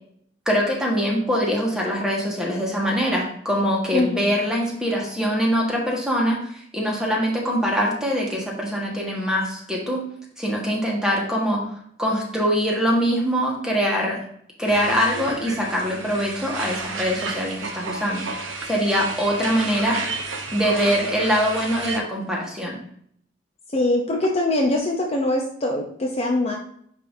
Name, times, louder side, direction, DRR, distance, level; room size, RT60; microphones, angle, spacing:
voice 1, 0.5-10.0 10.4-11.6 12.0-14.2 14.6-20.0 20.5-22.8, equal, 5° right, -3 dB, 1.4 m, -23 dB
sound 1, 14.7-22.0, right 3 dB, 90° right, 0.8 m, -32 dB
voice 2, 23.7-26.5, left 1 dB, 35° left, 0 dB, 0.7 m, -22 dB
9.6 x 3.6 x 2.7 m, 0.66 s
head